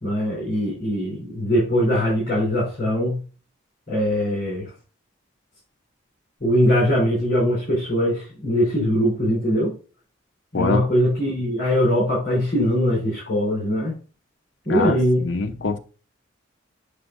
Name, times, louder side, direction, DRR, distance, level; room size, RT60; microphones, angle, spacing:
voice 1, 0.0-3.2 3.9-4.7 6.4-9.8 10.5-14.0 14.7-15.3, equal, 50° left, 3.7 m, -21 dB
voice 2, 14.7-15.8, left 4 dB, 70° left, 0.7 m, -24 dB
6.6 x 6.0 x 2.5 m
head